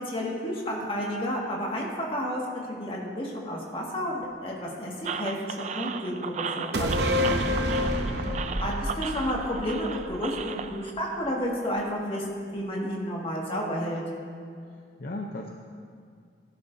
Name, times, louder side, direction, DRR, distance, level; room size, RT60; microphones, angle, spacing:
voice 1, 0.0-7.5 8.6-14.0, equal, 30° left, -3 dB, 1.9 m, -31 dB
sound 1, 5.0-10.9, right 6 dB, 40° right, 0.4 m, -36 dB
sound 2, 6.7-10.3 10.6-10.7, equal, 70° right, 0.9 m, -28 dB
voice 2, 7.9-8.7 14.7-15.5, left 2 dB, 55° left, 1 dB, 0.7 m, -39 dB
16.0 x 11.0 x 2.7 m, 2.2 s
head